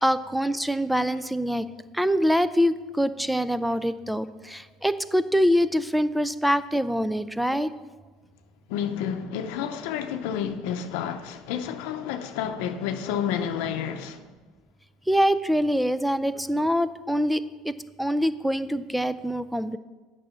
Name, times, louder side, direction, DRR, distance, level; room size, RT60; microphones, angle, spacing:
voice 1, 0.0-1.7 1.9-7.7 15.1-19.8, equal, ahead, 0.4 m, -24 dB
voice 2, 8.7-14.2, left 8 dB, 85° left, 0.7 m, -30 dB
8.9 x 6.1 x 7.0 m
cardioid pair, 150°, 0 cm